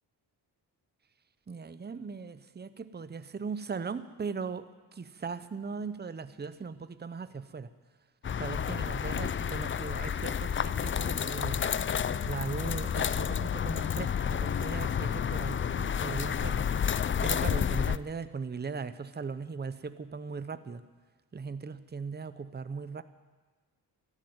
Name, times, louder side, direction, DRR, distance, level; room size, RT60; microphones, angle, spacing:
voice 1, 1.5-4.7 4.9-7.7 8.4-11.7 12.1-16.6 17.2-20.8 21.3-23.0, right 5 dB, 25° right, 12 dB, 0.8 m, -38 dB
sound 1, 8.2-18.0, left 8 dB, 30° left, 0.4 m, -30 dB
13.0 x 11.5 x 9.4 m, 1.3 s
cardioid pair, 80°, 43 cm